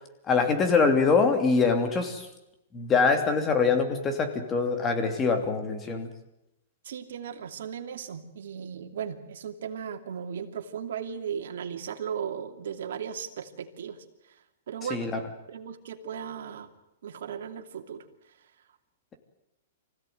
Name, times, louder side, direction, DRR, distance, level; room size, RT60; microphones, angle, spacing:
voice 1, 0.3-2.3 2.7-6.1 14.9-15.2, left 4 dB, 20° left, 6 dB, 2.9 m, -24 dB
voice 2, 6.8-14.0 14.7-15.1 15.5-16.7 17.0-18.0, right 7 dB, 75° right, 5 dB, 2.7 m, -36 dB
25.0 x 16.0 x 9.4 m, 0.87 s
hypercardioid pair, 155°, 0 cm